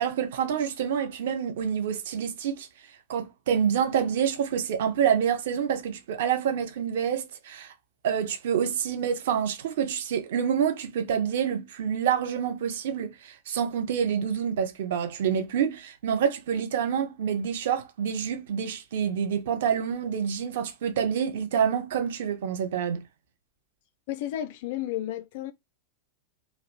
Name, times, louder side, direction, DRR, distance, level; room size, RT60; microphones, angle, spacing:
voice 1, 0.0-2.7 3.1-7.7 8.0-23.0, right 8 dB, 55° right, 0.5 m, -27 dB
voice 2, 24.1-25.5, left 12 dB, 50° left, 0.3 m, -32 dB
2.4 x 2.1 x 2.8 m
figure-of-eight pair, 90°, 0 cm